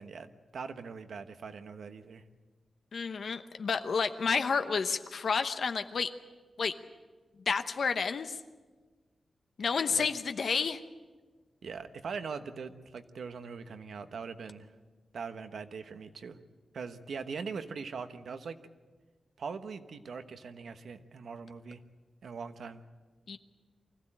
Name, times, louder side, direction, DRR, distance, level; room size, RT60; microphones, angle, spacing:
voice 1, 0.0-2.2 9.9-10.1 10.5-10.6 11.6-14.7 15.1-16.4 16.7-18.6 19.4-21.8 22.2-22.8, right 5 dB, 75° right, 9 dB, 1.2 m, -41 dB
voice 2, 2.9-6.1 6.6-6.7 7.5-8.4 9.6-10.8 23.3-23.4, left 5 dB, 60° left, 8 dB, 0.9 m, -30 dB
24.5 x 15.5 x 8.8 m, 1.4 s
wide cardioid pair, 145°, 0 cm